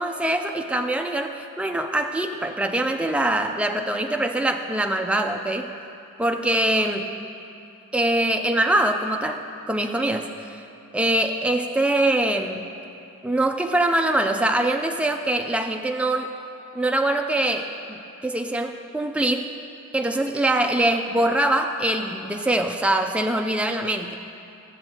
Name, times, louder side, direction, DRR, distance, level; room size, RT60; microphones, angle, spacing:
voice 1, 0.0-5.7 6.2-7.1 7.9-10.6 10.9-12.6 13.2-16.3 16.7-19.5 19.9-24.1, right 1 dB, 5° right, 4 dB, 0.3 m, -23 dB
13.0 x 7.7 x 2.8 m, 2.7 s
head